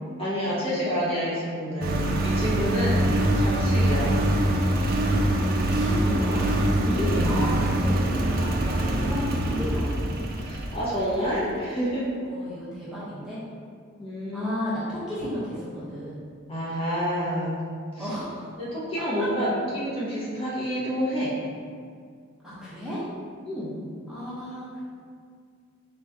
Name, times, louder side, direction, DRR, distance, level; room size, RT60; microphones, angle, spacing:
voice 1, 0.2-4.2 6.8-7.4 10.4-12.1 14.0-14.6 16.5-17.6 17.9-18.1 18.6-21.3 23.4-23.8, equal, 30° left, -9 dB, 1.1 m, -28 dB
Engine, 1.8-11.2, right 1 dB, 50° right, 0.4 m, -24 dB
voice 2, 3.9-4.3 5.4-6.5 7.2-9.9 12.2-13.4 14.3-16.2 18.0-18.5 19.0-19.3 22.4-23.0 24.1-24.8, equal, ahead, -11 dB, 1.0 m, -34 dB
4.0 x 3.1 x 3.6 m, 2.1 s
head